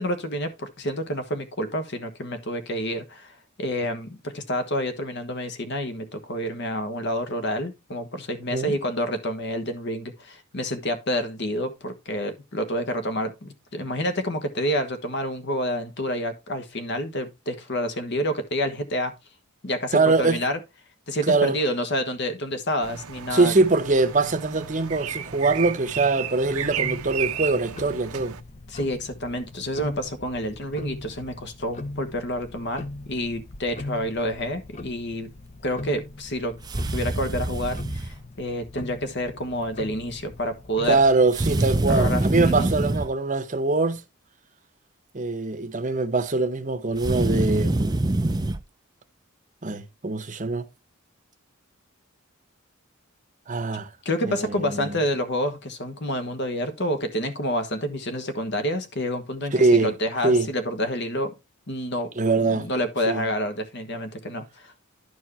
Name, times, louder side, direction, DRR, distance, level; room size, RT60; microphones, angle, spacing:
voice 1, 0.0-19.1 19.6-20.6 21.1-23.5 28.7-35.3 35.6-36.5 36.9-41.0 41.9-42.7 54.0-61.3 61.7-62.1 62.4-64.7, equal, 50° left, 1.3 m, -28 dB
voice 2, 19.9-20.4 21.3-21.6 23.3-28.4 40.9-44.0 45.1-48.1 49.6-50.7 53.5-53.9 54.2-55.0 59.5-59.9 60.2-60.5 62.2-62.7 63.1-63.3, right 3 dB, 35° right, 0.8 m, -23 dB
sound 1, 22.8-28.4, right 9 dB, 85° right, 0.7 m, -33 dB
Tick-tock, 26.4-41.6, left 2 dB, 30° left, 0.8 m, -40 dB
sound 2, 36.6-38.1 41.3-43.1 46.9-48.6, right 2 dB, 20° right, 0.4 m, -25 dB
11.0 x 4.6 x 4.3 m
head